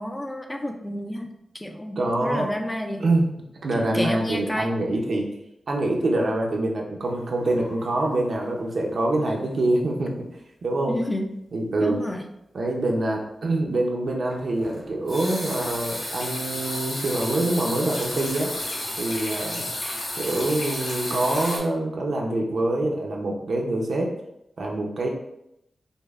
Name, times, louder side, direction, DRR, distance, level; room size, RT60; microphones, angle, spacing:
voice 1, 0.0-3.0 3.7-4.7 10.9-11.3 11.8-12.2, left 1 dB, 10° left, 4 dB, 0.3 m, -30 dB
voice 2, 2.0-2.5 3.0-3.3 3.6-5.3 5.7-10.1 10.6-11.0 11.5-12.0 12.5-18.5 19.0-19.6 20.2-24.1 24.6-25.1, right 2 dB, 65° right, 0 dB, 0.6 m, -25 dB
sound 1, 7.0-8.6 8.9-9.2 9.6-9.7 14.3-21.6, left 1 dB, 50° left, 1.0 m, -32 dB
5.2 x 2.0 x 2.4 m, 0.81 s
wide cardioid pair, 120°, 0 cm